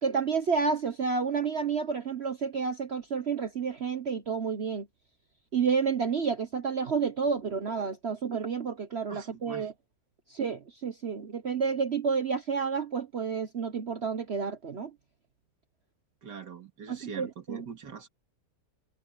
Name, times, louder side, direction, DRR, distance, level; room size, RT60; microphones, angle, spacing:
voice 1, 0.0-4.9 5.5-9.7 10.3-14.9 16.9-17.7, right 5 dB, 45° right, 1.0 m, -30 dB
voice 2, 9.1-9.7 16.2-18.1, right 6 dB, 75° right, 2.7 m, -43 dB
omnidirectional pair, 1.8 m